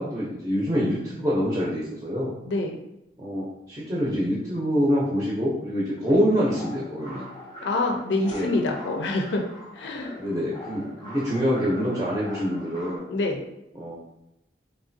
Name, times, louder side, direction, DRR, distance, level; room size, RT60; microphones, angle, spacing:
voice 1, 0.0-2.3 3.2-7.3 8.3-8.5 10.2-13.0 13.7-14.0, equal, 20° right, -6 dB, 0.6 m, -25 dB
voice 2, 2.5-2.8 7.6-9.4 9.7-10.1 13.1-13.4, left 2 dB, 80° left, 2 dB, 0.4 m, -26 dB
sound 1, 6.0-13.0, left 1 dB, 20° left, 0.8 m, -42 dB
3.1 x 2.4 x 2.6 m, 0.89 s
head